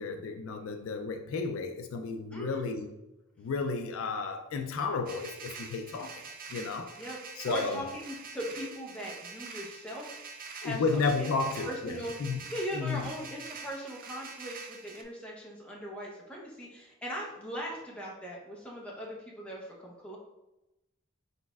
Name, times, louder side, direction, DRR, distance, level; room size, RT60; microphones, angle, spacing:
voice 1, 0.0-2.9 3.4-6.2 6.5-6.9 7.4-7.8 10.6-11.9 12.2-12.4 12.7-13.1, left 4 dB, 65° left, 6 dB, 0.3 m, -32 dB
voice 2, 2.3-2.7 7.0-7.2 7.5-11.3 11.6-12.1 12.5-20.2, equal, 5° left, -3 dB, 0.7 m, -39 dB
sound 1, 5.1-15.0, right 5 dB, 40° right, 0.4 m, -45 dB
4.1 x 4.1 x 2.3 m, 0.96 s
head